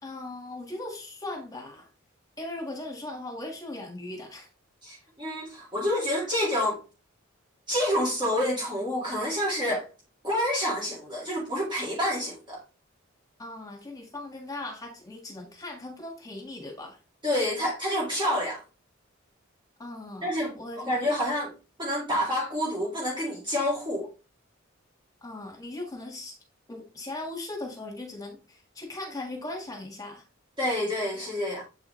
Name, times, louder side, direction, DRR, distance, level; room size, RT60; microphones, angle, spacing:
voice 1, 0.0-1.9 2.4-4.5 13.4-17.0 19.8-20.9 25.2-26.3 26.7-30.2, left 2 dB, 15° left, 1.6 m, -38 dB
voice 2, 4.8-6.8 7.7-9.9 10.2-12.6 17.2-18.6 20.2-21.5 21.8-24.1 30.6-31.6, left 1 dB, 25° right, 2.0 m, -28 dB
7.5 x 4.7 x 3.1 m
head